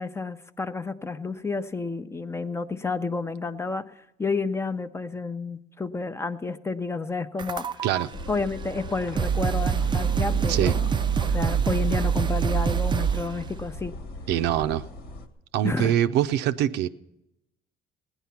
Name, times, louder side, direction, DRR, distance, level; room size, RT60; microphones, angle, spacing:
voice 1, 0.0-3.9 4.2-7.7 8.3-10.9 11.2-14.0 15.6-15.9, left 4 dB, 15° left, 0.6 m, -30 dB
sound 1, 7.4-8.0 8.8-8.9 9.2-13.4, right 7 dB, 25° right, 0.4 m, -25 dB
sound 2, 8.1-15.3, left 1 dB, 75° left, 1.5 m, -38 dB
voice 2, 14.3-14.9 15.5-16.9, right 11 dB, 90° right, 0.6 m, -24 dB
17.0 x 10.5 x 5.8 m
cardioid pair, 110°, 17 cm